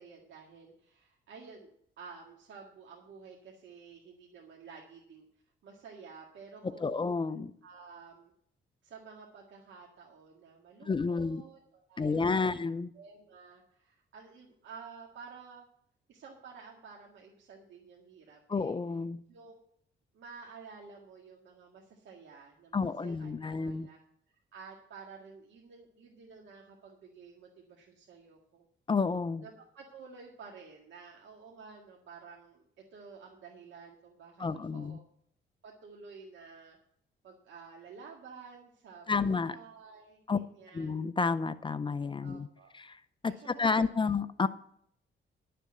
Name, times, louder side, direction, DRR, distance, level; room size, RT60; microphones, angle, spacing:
voice 1, 0.0-5.3 5.6-7.1 7.6-8.3 8.8-12.6 12.9-15.6 16.1-18.7 19.3-19.6 20.1-24.0 24.5-28.7 29.4-32.6 32.9-35.0 35.6-36.8 37.2-40.9 42.2-42.7 43.3-44.1, right 5 dB, 75° right, -1 dB, 1.9 m, -52 dB
voice 2, 6.8-7.5 10.9-11.4 12.0-12.9 18.5-19.2 22.7-23.9 28.9-29.4 34.4-35.0 39.1-39.6 40.3-40.4 40.7-42.5 42.7-43.3 43.6-44.5, left 4 dB, 25° left, 14 dB, 0.5 m, -30 dB
11.5 x 6.7 x 7.6 m, 0.67 s
cardioid pair, 110°, 20 cm